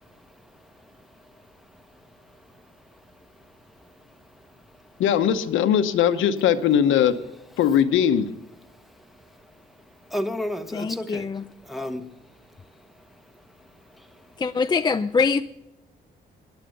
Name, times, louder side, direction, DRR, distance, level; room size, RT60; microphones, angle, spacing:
voice 1, 0.0-5.0 8.6-14.6, left 1 dB, ahead, 1.1 m, -38 dB
voice 2, 5.0-7.1 7.6-8.3, left 9 dB, 80° left, 0.9 m, -20 dB
voice 3, 10.7-11.4 14.4-15.4, left 5 dB, 20° left, 0.4 m, -23 dB
11.5 x 10.5 x 6.6 m
cardioid pair, 90°, 20 cm